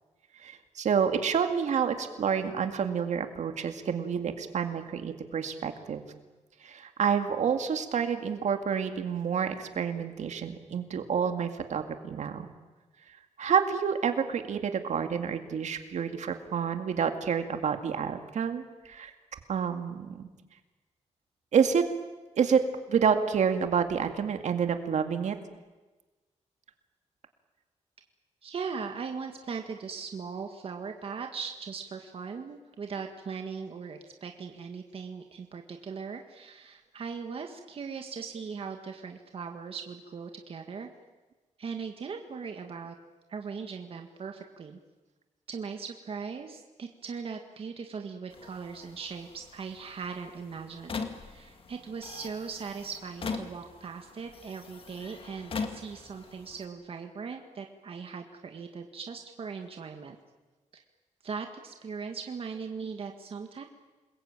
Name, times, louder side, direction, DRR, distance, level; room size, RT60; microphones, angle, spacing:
voice 1, 0.4-6.0 6.6-12.5 13.4-19.1 19.5-20.3 21.5-21.9 22.4-22.6 22.9-25.4, right 7 dB, 70° right, 7 dB, 2.2 m, -28 dB
voice 2, 28.4-40.9 41.6-42.9 43.3-44.8 45.5-60.1 60.7-60.8 61.2-63.6, right 5 dB, 50° right, 4 dB, 1.7 m, -39 dB
sound 1, 48.3-56.6, left 5 dB, 45° left, 2.1 m, -41 dB
28.0 x 21.5 x 8.9 m, 1.2 s
wide cardioid pair, 180°, 12 cm